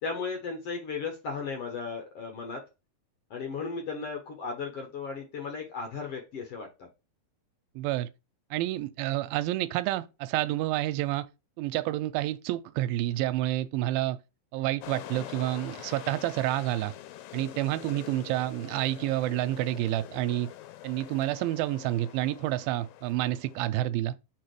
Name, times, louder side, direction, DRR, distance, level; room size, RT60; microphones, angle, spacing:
voice 1, 0.0-2.6 3.3-6.7, left 5 dB, 60° left, 1.6 m, -35 dB
voice 2, 7.8-8.1 8.5-11.3 11.6-14.2 14.5-16.9 17.3-20.5 20.8-24.2, right 15 dB, 90° right, 2.4 m, -29 dB
sound 1, 14.8-23.8, left 13 dB, 85° left, 2.3 m, -45 dB
4.8 x 4.5 x 4.7 m
omnidirectional pair, 4.1 m